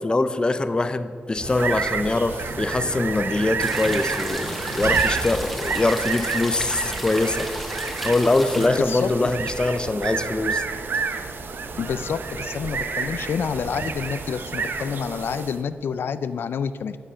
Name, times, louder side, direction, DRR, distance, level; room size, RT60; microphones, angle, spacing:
voice 1, 0.0-7.5 8.0-10.6, left 2 dB, 25° left, 11 dB, 0.6 m, -23 dB
sound 1, 1.4-15.7, right 5 dB, 65° right, 0.8 m, -29 dB
sound 2, 3.6-4.3 6.6-7.4 8.8-9.4 10.9-11.2, left 3 dB, 45° left, 2.3 m, -47 dB
sound 3, 3.6-8.7, equal, ahead, 1.5 m, -33 dB
voice 2, 8.6-9.3 11.8-17.0, left 6 dB, 75° left, 12 dB, 0.4 m, -28 dB
12.5 x 8.8 x 5.6 m, 2.2 s
wide cardioid pair, 105°, 4 cm